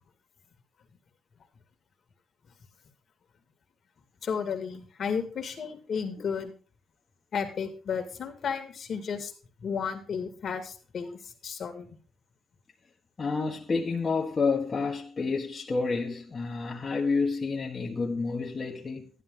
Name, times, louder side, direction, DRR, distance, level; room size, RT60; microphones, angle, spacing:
voice 1, 4.2-6.5 7.3-9.3 9.6-11.9, left 6 dB, 55° left, 2.1 m, -33 dB
voice 2, 13.2-19.1, left 4 dB, 35° left, 1.5 m, -29 dB
12.0 x 11.0 x 3.8 m
cardioid pair, 90°, 0 cm